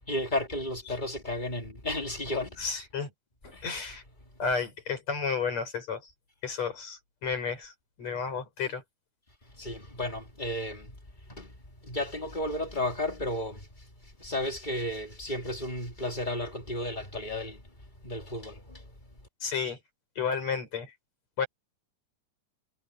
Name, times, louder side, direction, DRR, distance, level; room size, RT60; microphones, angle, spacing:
voice 1, 0.1-2.7 3.5-4.0 9.6-10.9 11.3-11.5 11.8-13.6 14.2-17.6 18.0-18.8, left 1 dB, 15° left, 2.4 m, -33 dB
voice 2, 2.6-3.1 3.4-4.0 4.4-6.0 6.4-7.7 8.0-8.8 19.4-19.8 20.2-20.9 21.4-21.5, left 5 dB, 55° left, 6.8 m, -32 dB
omnidirectional pair, 3.7 m